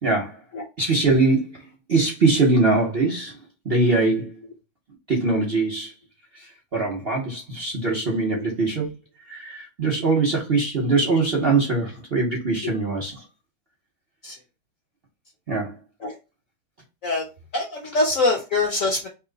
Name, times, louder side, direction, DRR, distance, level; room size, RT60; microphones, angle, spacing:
voice 1, 0.0-0.4 0.8-3.4 3.6-4.4 5.1-5.9 6.3-8.9 9.2-13.2 15.5-15.7, right 3 dB, 50° right, 0.7 m, -22 dB
voice 2, 17.5-19.1, left 2 dB, 65° left, 0.8 m, -23 dB
3.0 x 2.8 x 3.9 m
omnidirectional pair, 2.1 m